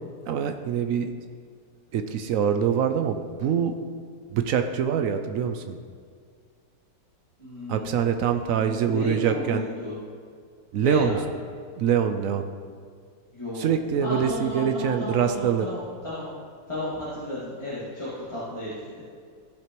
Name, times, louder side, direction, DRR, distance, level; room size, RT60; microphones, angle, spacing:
voice 1, 0.3-1.1 1.9-3.7 4.3-5.8 7.7-9.7 10.7-11.2 11.8-12.4 13.5-15.7, right 8 dB, 70° right, 7 dB, 0.8 m, -24 dB
voice 2, 7.4-9.9 10.8-11.1 13.3-13.7 14.0-15.8 16.0-16.2 16.7-18.8, left 1 dB, 15° left, -11 dB, 2.1 m, -33 dB
15.0 x 5.8 x 3.1 m, 2.1 s
omnidirectional pair, 1.9 m